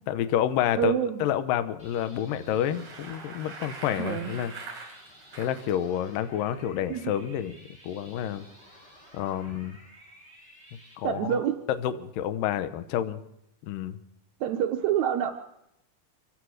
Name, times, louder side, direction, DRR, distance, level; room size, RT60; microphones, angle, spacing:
voice 1, 0.1-0.9 1.2-4.5 5.3-7.6 7.8-8.5 9.1-9.8 11.0-11.4 11.8-13.2 13.6-14.0, left 10 dB, 70° left, 11 dB, 2.3 m, -29 dB
voice 2, 0.8-1.2 4.0-4.3 6.9-7.1 11.0-11.6 14.4-15.3, right 9 dB, 85° right, 5 dB, 1.6 m, -26 dB
sound 1, 1.8-10.9, equal, 15° left, 6.8 m, -53 dB
Bicycle, 2.4-5.7, right 4 dB, 55° right, 6.3 m, -43 dB
26.0 x 16.0 x 6.5 m, 0.83 s
omnidirectional pair, 4.6 m